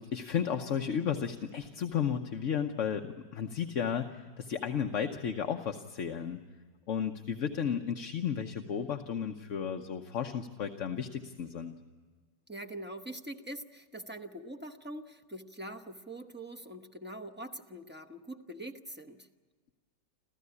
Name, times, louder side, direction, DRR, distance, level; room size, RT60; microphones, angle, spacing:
voice 1, 0.0-6.4 6.9-11.7, left 7 dB, 55° left, 5 dB, 1.1 m, -33 dB
voice 2, 12.5-19.3, right 1 dB, 10° right, 4 dB, 0.6 m, -43 dB
27.5 x 15.0 x 9.7 m, 1.5 s
omnidirectional pair, 1.9 m